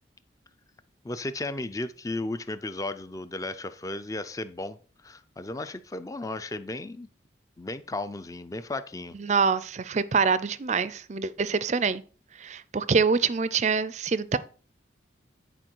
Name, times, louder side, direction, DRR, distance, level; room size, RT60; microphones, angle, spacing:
voice 1, 1.0-7.1 7.6-9.2, left 2 dB, 20° left, 0.4 m, -35 dB
voice 2, 9.2-12.0 12.4-14.4, right 5 dB, 40° right, 0.4 m, -25 dB
10.0 x 4.7 x 4.5 m
head